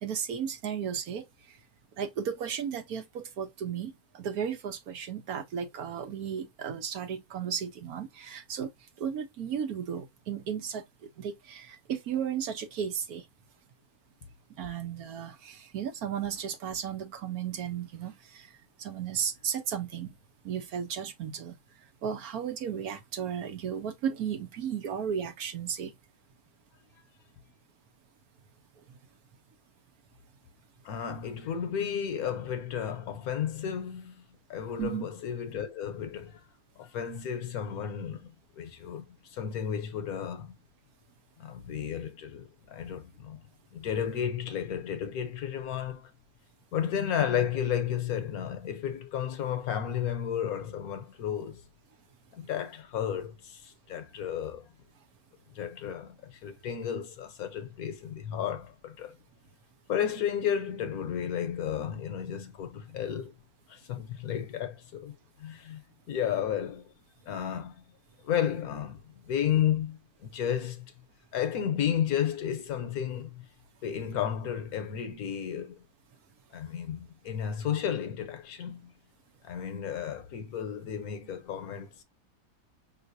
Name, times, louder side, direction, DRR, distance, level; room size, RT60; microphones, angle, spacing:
voice 1, 0.0-1.6 2.0-8.7 9.0-10.8 11.2-13.2 14.5-20.2 20.4-21.5 22.0-25.9 34.8-35.0, right 8 dB, 65° right, 1.2 m, -34 dB
voice 2, 30.8-34.2 34.5-36.4 36.8-40.6 41.4-43.5 43.7-46.1 46.7-51.6 52.3-54.7 55.5-59.2 59.9-63.3 63.7-65.8 66.1-66.9 67.3-67.8 68.2-70.9 71.3-73.4 73.8-75.8 76.5-78.9 79.4-82.0, left 9 dB, 65° left, 1.2 m, -33 dB
5.5 x 3.1 x 2.5 m
omnidirectional pair, 1.8 m